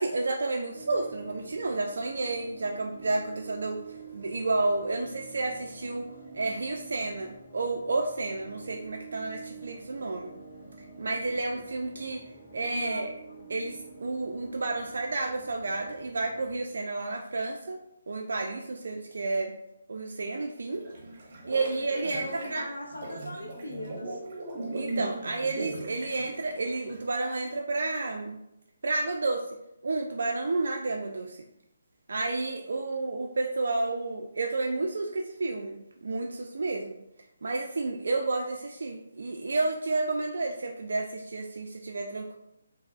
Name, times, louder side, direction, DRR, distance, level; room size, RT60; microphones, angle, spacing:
voice 1, 0.0-3.8 4.1-6.1 6.3-10.3 11.0-12.2 12.5-13.1 13.5-17.8 18.1-19.5 19.9-20.8 21.5-22.7 24.7-28.4 28.8-29.4 29.8-31.4 32.1-37.0 37.4-42.4, right 3 dB, 65° right, 1 dB, 0.3 m, -31 dB
sound 1, 0.7-16.6, right 4 dB, 10° left, 0.8 m, -48 dB
voice 2, 12.7-13.4 21.3-21.4 21.9-24.2, left 1 dB, 80° left, -3 dB, 0.5 m, -39 dB
sound 2, 20.7-27.5, right 2 dB, 45° right, 0.7 m, -39 dB
4.2 x 2.0 x 2.3 m, 0.83 s
figure-of-eight pair, 145°, 0 cm